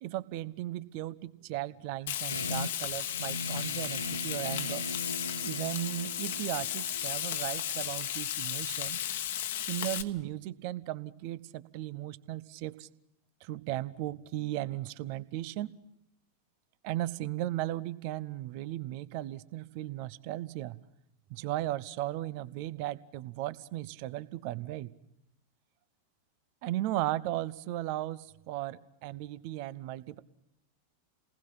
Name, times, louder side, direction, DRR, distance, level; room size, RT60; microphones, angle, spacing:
voice 1, 0.0-4.8 5.4-9.0 9.7-12.9 13.4-15.7 16.8-20.8 21.3-24.9 26.6-30.2, right 15 dB, 45° right, 17 dB, 0.8 m, -36 dB
Frying (food), 2.1-10.0, left 11 dB, 55° left, 1.2 m, -35 dB
sound 1, 2.3-7.8, left 1 dB, 85° left, 1.2 m, -40 dB
30.0 x 19.5 x 5.9 m, 0.80 s
figure-of-eight pair, 90°, 0 cm